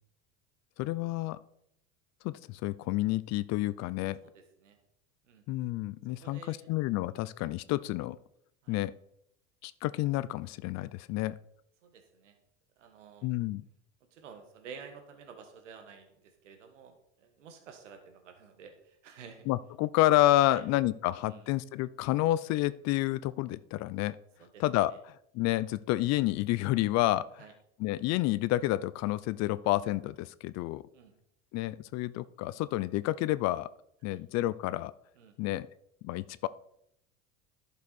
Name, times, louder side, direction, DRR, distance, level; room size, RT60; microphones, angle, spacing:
voice 1, 0.8-1.4 2.2-4.2 5.5-8.2 8.7-8.9 9.6-11.4 13.2-13.6 19.5-24.2 24.6-24.9 25.3-27.4 27.8-30.8 31.5-33.7 34.0-34.9 35.4-35.7 36.0-36.5, left 16 dB, 50° left, 17 dB, 0.5 m, -29 dB
voice 2, 4.2-4.8 5.3-5.4 6.2-6.7 8.6-8.8 11.8-12.3 12.8-13.3 14.1-19.4 20.5-20.6 21.2-21.5 24.4-24.6 24.9-25.0 27.4-27.5 30.9-31.1 34.1-34.2 35.2-35.4, right 6 dB, 90° right, 5 dB, 1.5 m, -51 dB
11.5 x 6.7 x 4.1 m, 0.76 s
hypercardioid pair, 90°, 35 cm